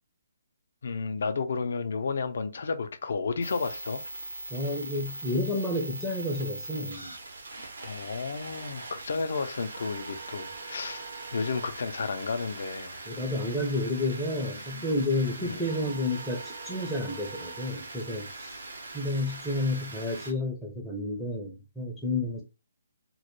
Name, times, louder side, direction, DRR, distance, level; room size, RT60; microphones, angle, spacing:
voice 1, 0.8-4.0 7.8-11.0 11.3-13.0 15.4-15.6, left 4 dB, 65° left, 0.4 m, -32 dB
sound 1, 3.4-20.3, right 3 dB, 80° right, 0.7 m, -41 dB
voice 2, 4.5-7.1 13.1-18.6 18.9-22.4, left 1 dB, ahead, 0.4 m, -30 dB
2.2 x 2.1 x 3.0 m
hypercardioid pair, 150°, 0 cm